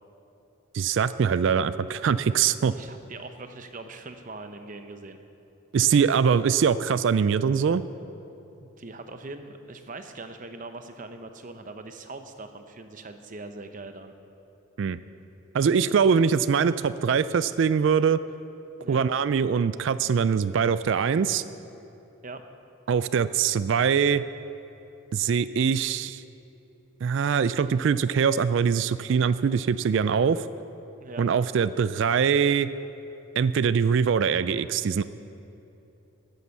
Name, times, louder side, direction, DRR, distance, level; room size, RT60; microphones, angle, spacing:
voice 1, 0.7-2.7 5.7-7.8 14.8-15.0 15.5-18.2 18.9-21.4 22.9-24.2 25.1-26.2 27.0-30.4 31.2-32.7 33.4-35.0, right 6 dB, 60° right, 15 dB, 0.3 m, -23 dB
voice 2, 2.7-5.2 8.6-14.1 18.8-19.1 22.2-22.4 31.0-31.3, right 3 dB, 40° right, 7 dB, 0.7 m, -41 dB
13.5 x 9.6 x 7.0 m, 2.9 s
head